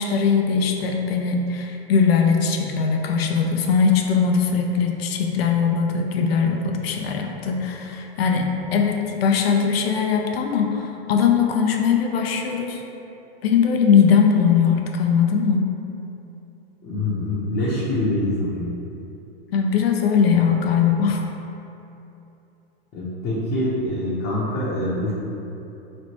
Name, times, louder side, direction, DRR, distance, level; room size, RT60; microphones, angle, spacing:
voice 1, 0.0-12.8 13.4-15.7 19.5-21.2, left 6 dB, 75° left, 3 dB, 0.6 m, -20 dB
voice 2, 16.8-18.6 22.9-25.1, left 1 dB, 30° left, -9 dB, 0.8 m, -25 dB
4.1 x 3.2 x 2.9 m, 2.9 s
hypercardioid pair, 110°, 31 cm